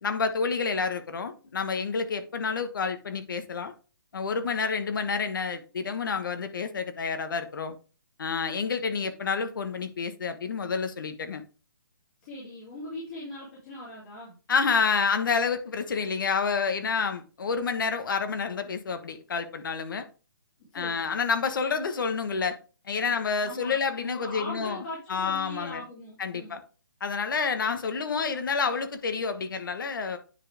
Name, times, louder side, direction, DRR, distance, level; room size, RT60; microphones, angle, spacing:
voice 1, 0.0-3.7 4.1-7.7 8.2-11.4 14.5-20.1 20.7-22.6 22.9-24.8 25.1-25.8 26.2-26.6 27.0-30.2, left 5 dB, 65° left, 1.2 m, -29 dB
voice 2, 12.2-14.4 20.7-21.0 23.4-26.6, left 2 dB, 35° left, 3.0 m, -40 dB
9.8 x 4.3 x 3.4 m
hypercardioid pair, 160°, 12 cm